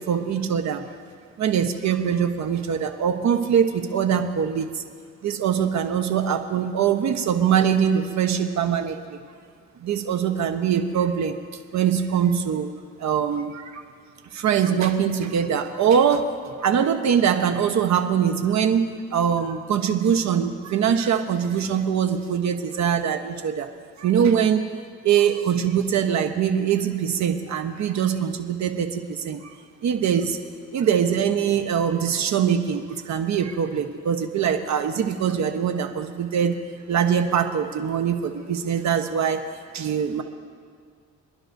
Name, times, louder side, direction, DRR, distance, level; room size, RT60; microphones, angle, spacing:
voice 1, 0.1-0.8 1.4-4.8 5.2-9.2 9.8-11.4 11.7-12.7 13.0-13.8 14.3-23.7 24.0-24.7 25.0-29.5 29.8-30.4 30.7-36.6 36.9-39.4 39.7-40.2, right 8 dB, 65° right, 7 dB, 1.1 m, -23 dB
27.0 x 11.0 x 2.7 m, 2.1 s
cardioid pair, 90°, 30 cm